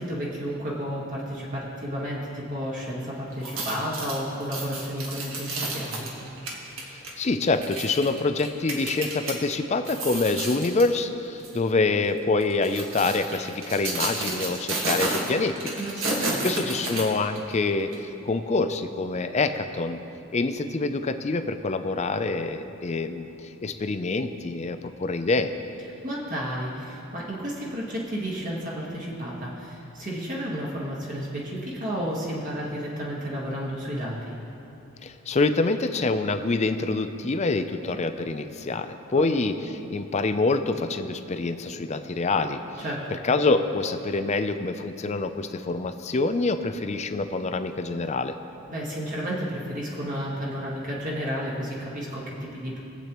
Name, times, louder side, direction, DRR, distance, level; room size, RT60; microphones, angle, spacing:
voice 1, 0.0-6.1 15.8-16.4 26.0-34.3 39.1-39.2 42.8-43.0 48.7-52.8, equal, 35° right, -5 dB, 1.6 m, -32 dB
sound 1, 3.3-9.4 9.8-10.9 11.4-11.6 12.4-17.5 17.9-18.0, right 2 dB, 60° right, 1.6 m, -31 dB
voice 2, 6.9-15.7 16.4-20.0 20.3-23.3 23.6-25.5 35.0-42.8 43.2-48.3, left 3 dB, 30° left, 9 dB, 0.4 m, -26 dB
22.0 x 8.2 x 3.0 m, 2.9 s
head